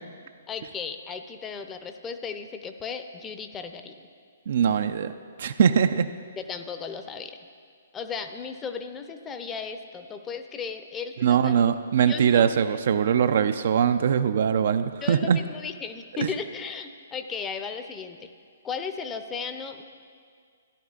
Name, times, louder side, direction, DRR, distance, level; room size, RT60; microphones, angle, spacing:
voice 1, 0.5-4.0 6.4-7.4 7.9-11.7 12.1-12.5 15.0-18.3 18.6-19.8, left 6 dB, 15° left, 8 dB, 0.6 m, -35 dB
voice 2, 4.5-5.1 5.4-6.1 11.2-15.4 16.2-16.3, right 7 dB, 55° right, 10 dB, 0.4 m, -22 dB
16.0 x 10.5 x 2.4 m, 2.1 s
figure-of-eight pair, 125°, 0 cm